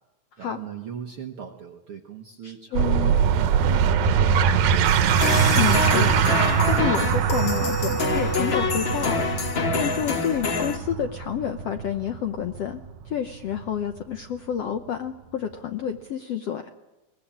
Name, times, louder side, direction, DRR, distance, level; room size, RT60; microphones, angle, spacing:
voice 1, 0.4-4.7, right 8 dB, 65° right, 4 dB, 1.4 m, -39 dB
voice 2, 2.4-3.1 5.6-6.1 6.7-9.5 9.7-16.7, left 9 dB, 75° left, 7 dB, 1.4 m, -29 dB
sound 1, 2.7-13.8, right 7 dB, 85° right, 2.9 m, -22 dB
sound 2, 5.2-10.8, left 4 dB, 45° left, 1.9 m, -26 dB
22.5 x 19.5 x 8.7 m, 1.0 s
omnidirectional pair, 4.1 m